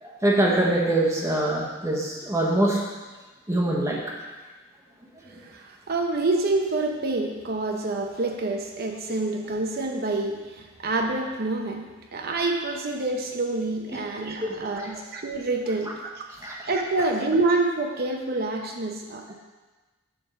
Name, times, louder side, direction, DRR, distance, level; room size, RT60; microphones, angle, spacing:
voice 1, 0.0-2.8 3.5-4.0 14.4-14.5 16.4-16.6, right 1 dB, 15° right, -3 dB, 1.0 m, -23 dB
voice 2, 5.4-16.2 16.6-19.3, right 2 dB, 50° right, 2 dB, 0.7 m, -27 dB
8.9 x 3.5 x 6.7 m, 1.2 s
head